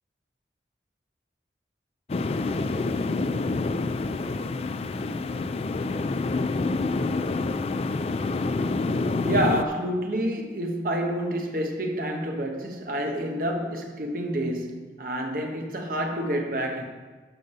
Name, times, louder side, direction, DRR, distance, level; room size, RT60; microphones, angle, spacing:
sound 1, 2.1-9.6, left 3 dB, 35° left, 0.3 m, -27 dB
voice 1, 9.2-16.8, right 1 dB, 50° right, 1.1 m, -28 dB
11.5 x 5.3 x 5.5 m
head